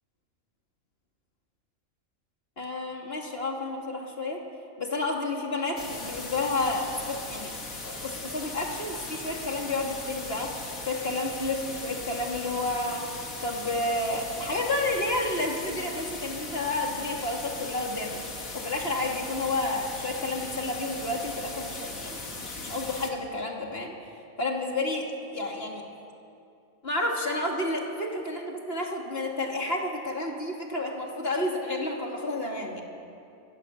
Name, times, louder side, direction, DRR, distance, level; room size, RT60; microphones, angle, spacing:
voice 1, 2.6-4.4 4.8-7.5 7.8-10.5 10.9-18.2 18.5-23.9 24.4-25.1 25.3-25.8 26.8-32.8, left 2 dB, 45° left, 0 dB, 2.8 m, -30 dB
sound 1, 5.8-23.1, left 3 dB, 85° left, 2.8 m, -38 dB
25.0 x 17.5 x 8.1 m, 2.6 s
omnidirectional pair, 1.4 m